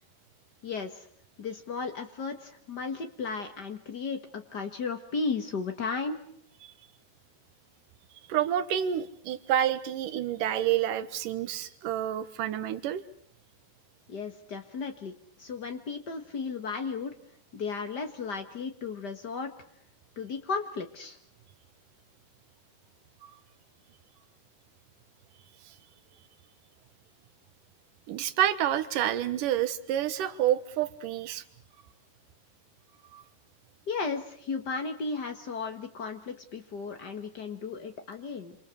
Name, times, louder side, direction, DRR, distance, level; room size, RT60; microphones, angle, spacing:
voice 1, 0.6-1.1 1.4-6.2 14.1-15.1 15.4-17.1 17.5-19.5 20.2-21.2 33.9-38.6, left 4 dB, 85° left, 6 dB, 0.9 m, -35 dB
voice 2, 8.3-13.0 23.2-23.3 28.1-31.4 33.1-33.2, right 11 dB, 65° right, 12 dB, 2.6 m, -28 dB
28.0 x 27.0 x 6.5 m, 0.64 s
omnidirectional pair, 4.8 m